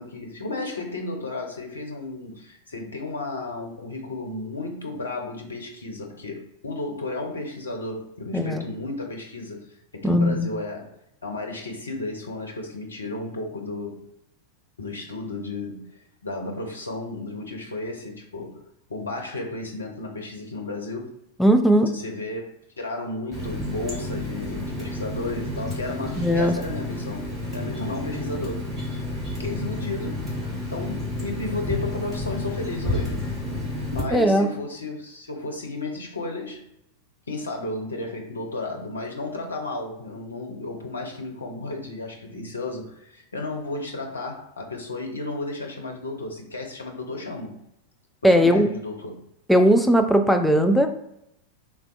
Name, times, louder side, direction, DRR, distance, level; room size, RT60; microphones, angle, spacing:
voice 1, 0.0-9.7 9.9-10.9 11.2-14.1 14.8-21.1 21.9-28.7 29.4-36.7 37.3-47.6 48.2-49.2, left 2 dB, 75° left, 2 dB, 0.5 m, -33 dB
voice 2, 8.3-8.6 10.0-10.5 21.4-21.9 26.2-26.5 34.1-34.5 48.2-48.7 49.5-50.9, equal, ahead, 5 dB, 0.3 m, -18 dB
Water tap faucet, 23.3-34.0, left 1 dB, 15° right, 1.0 m, -30 dB
3.4 x 2.2 x 2.4 m, 0.79 s
figure-of-eight pair, 90°, 0 cm